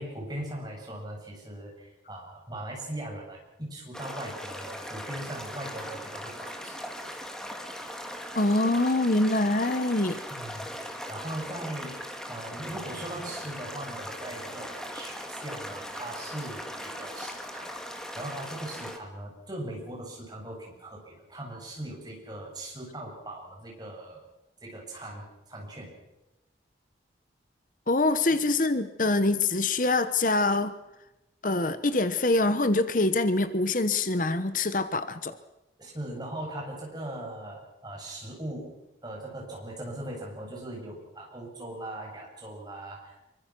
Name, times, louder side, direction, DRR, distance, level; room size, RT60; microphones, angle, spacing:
voice 1, 0.0-6.8 10.3-10.7 11.1-24.2 24.6-25.9 28.0-28.2 35.8-38.7 39.0-43.2, right 1 dB, 20° right, -1 dB, 7.8 m, -40 dB
sound 1, 3.9-19.0, equal, 5° left, 2.3 m, -39 dB
voice 2, 8.3-10.2 27.9-30.7 31.4-35.3, left 2 dB, 45° left, 12 dB, 1.0 m, -25 dB
26.0 x 24.0 x 6.1 m, 0.96 s
head